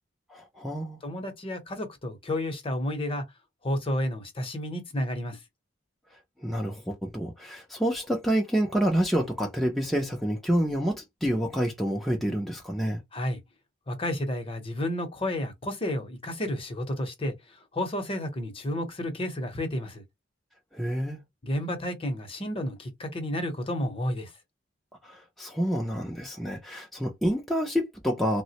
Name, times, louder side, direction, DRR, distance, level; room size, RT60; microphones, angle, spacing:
voice 1, 0.3-1.0 6.4-13.0 20.7-21.2 25.0-28.4, equal, ahead, 0.4 m, -28 dB
voice 2, 1.0-3.2 3.6-5.4 13.1-13.4 13.9-20.0 21.4-24.3, left 1 dB, 30° left, 0.7 m, -31 dB
3.4 x 2.0 x 2.8 m
head